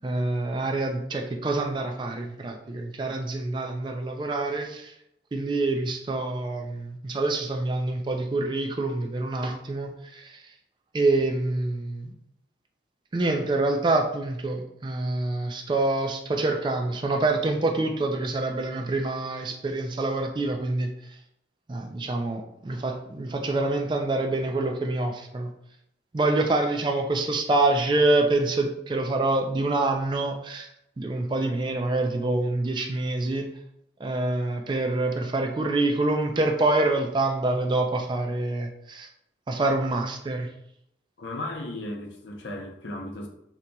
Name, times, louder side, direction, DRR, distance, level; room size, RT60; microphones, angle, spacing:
voice 1, 0.0-4.9 5.3-10.4 10.9-12.1 13.1-20.9 21.7-25.5 26.1-30.7 31.0-33.5 34.0-39.1 39.5-40.5, right 2 dB, 25° right, 3 dB, 0.3 m, -26 dB
voice 2, 41.2-43.3, left 1 dB, 85° left, 2 dB, 0.6 m, -35 dB
3.9 x 2.8 x 2.2 m, 0.78 s
head